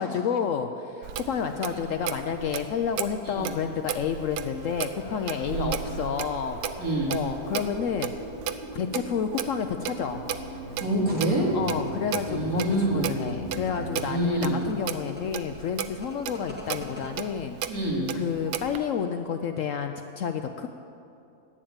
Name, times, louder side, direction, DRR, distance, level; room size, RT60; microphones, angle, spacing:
voice 1, 0.0-6.6 7.1-8.1 8.7-10.2 11.5-17.8 18.1-20.7, left 7 dB, 70° left, 7 dB, 0.8 m, -30 dB
Clock, 1.0-18.8, right 9 dB, 80° right, 1.2 m, -36 dB
sound 1, 3.8-14.1, equal, 15° left, 4.2 m, -40 dB
voice 2, 6.8-7.1 10.8-11.5 12.3-13.1 14.1-14.6 17.7-18.1, right 1 dB, 60° right, -3 dB, 3.0 m, -27 dB
sound 2, 11.2-17.1, left 1 dB, 5° right, 1.8 m, -45 dB
11.0 x 8.6 x 8.8 m, 2.6 s
omnidirectional pair, 1.7 m